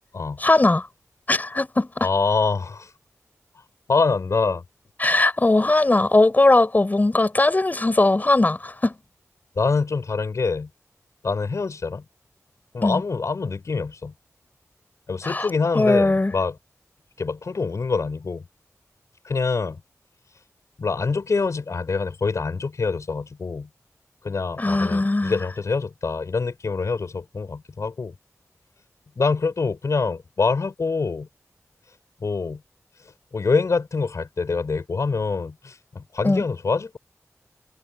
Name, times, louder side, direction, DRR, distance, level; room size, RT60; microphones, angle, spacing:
voice 1, 0.4-0.9 1.3-2.1 5.0-8.9 12.8-13.0 15.2-16.3 24.6-25.4 36.2-36.4, left 2 dB, 30° left, 6.4 m, -19 dB
voice 2, 2.0-2.9 3.9-4.6 9.6-10.7 11.2-12.0 12.7-14.1 15.1-16.6 17.2-18.4 19.2-19.8 20.8-23.7 24.2-28.1 29.2-31.3 32.2-32.6 33.3-37.0, left 4 dB, 70° left, 5.5 m, -25 dB
wide cardioid pair, 95°, 5 cm